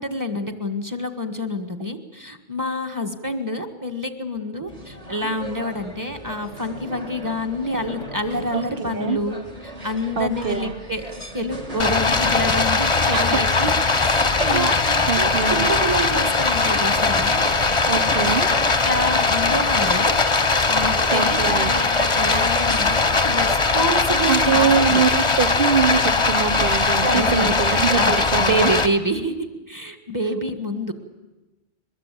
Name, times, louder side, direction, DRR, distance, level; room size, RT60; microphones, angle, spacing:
voice 1, 0.0-9.4 9.6-11.0 11.3-13.7 14.0-17.4 18.1-18.3 18.5-25.0 27.0-29.3 29.7-30.9, equal, 15° right, 7 dB, 1.8 m, -27 dB
sound 1, 4.7-23.7, right 1 dB, 30° right, 2.3 m, -40 dB
voice 2, 8.5-9.2 10.2-10.8 13.1-13.3 14.4-14.7 15.1-15.7 17.9-18.5 21.1-21.7 24.3-28.7, right 6 dB, 50° right, 11 dB, 1.2 m, -23 dB
Stream, 11.8-28.9, left 3 dB, 25° left, 1.1 m, -20 dB
22.5 x 21.5 x 8.5 m, 1.1 s
omnidirectional pair, 1.2 m